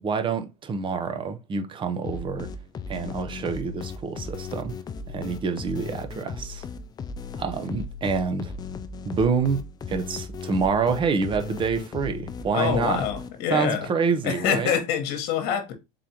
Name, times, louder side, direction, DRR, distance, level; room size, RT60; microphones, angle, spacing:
voice 1, 0.0-2.5 2.9-4.8 5.1-6.6 7.4-8.5 9.0-13.0 13.5-14.7, right 5 dB, 25° right, 0.7 m, -27 dB
sound 1, 2.0-13.6, left 4 dB, 20° left, 0.4 m, -37 dB
voice 2, 12.5-13.9 14.2-15.7, left 8 dB, 55° left, 1.2 m, -25 dB
3.8 x 3.4 x 2.8 m
supercardioid pair, 110°, 20 cm